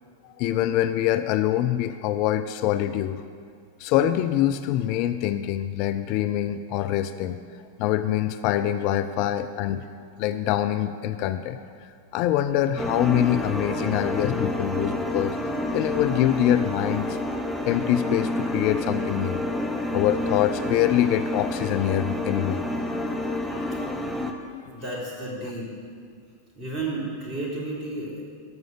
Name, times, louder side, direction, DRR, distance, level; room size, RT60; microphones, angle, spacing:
voice 1, 0.2-3.2 3.8-7.4 7.8-9.9 10.2-11.6 12.1-15.4 15.7-17.2 17.7-19.4 19.9-22.6 23.5-23.8 24.5-24.6, left 12 dB, 45° left, 11 dB, 0.4 m, -24 dB
sound 1, 12.8-24.3, left 1 dB, ahead, 0.9 m, -29 dB
voice 2, 24.7-25.7 26.5-28.2, right 2 dB, 30° right, -4 dB, 3.4 m, -32 dB
12.5 x 6.3 x 6.8 m, 2.1 s
figure-of-eight pair, 90°, 0 cm